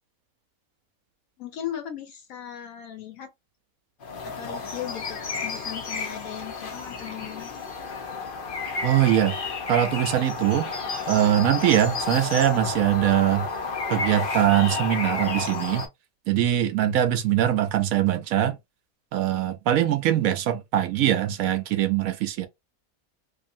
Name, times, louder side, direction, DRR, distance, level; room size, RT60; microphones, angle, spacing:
voice 1, 1.4-3.3 4.2-7.5, left 10 dB, 75° left, 1.0 m, -37 dB
sound 1, 4.0-15.9, left 4 dB, 50° left, 0.7 m, -31 dB
voice 2, 8.8-9.3 9.7-10.7 11.1-13.5 13.9-15.9 16.3-18.6 19.1-22.5, right 11 dB, 75° right, 1.0 m, -22 dB
2.6 x 2.6 x 2.6 m
omnidirectional pair, 1.5 m